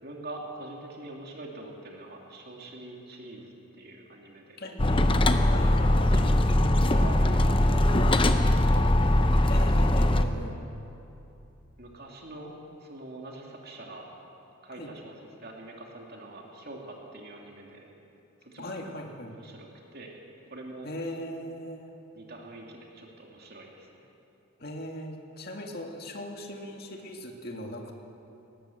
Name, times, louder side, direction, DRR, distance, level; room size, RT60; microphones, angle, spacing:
voice 1, 0.0-4.6 6.1-8.8 11.8-12.5 12.8-14.1 14.6-17.9 18.4-18.8 19.3-20.1 20.5-20.9 22.1-24.1, right 2 dB, 45° right, 0 dB, 2.6 m, -44 dB
voice 2, 4.6-6.2 9.5-10.6 14.7-14.9 18.6-19.4 20.8-21.9 24.6-27.9, left 1 dB, 45° left, 2 dB, 2.1 m, -39 dB
sound 1, 4.8-10.2, left 1 dB, 25° left, 0.8 m, -21 dB
19.0 x 18.5 x 7.8 m, 2.9 s
head